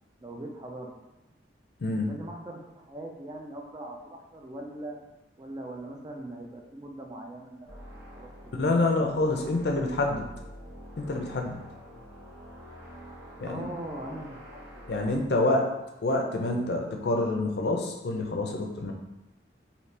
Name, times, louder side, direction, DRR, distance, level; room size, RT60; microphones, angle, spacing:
voice 1, 0.2-0.9 2.0-5.0 5.4-9.6 13.4-15.6, right 1 dB, 20° right, 1 dB, 0.4 m, -41 dB
sound 1, 7.7-15.2, equal, 65° right, 1.0 m, -47 dB
voice 2, 8.6-10.3 11.0-11.6 13.4-13.7 14.9-15.6 16.0-18.9, left 2 dB, 60° left, 2 dB, 0.5 m, -27 dB
2.8 x 2.7 x 3.2 m, 0.95 s
head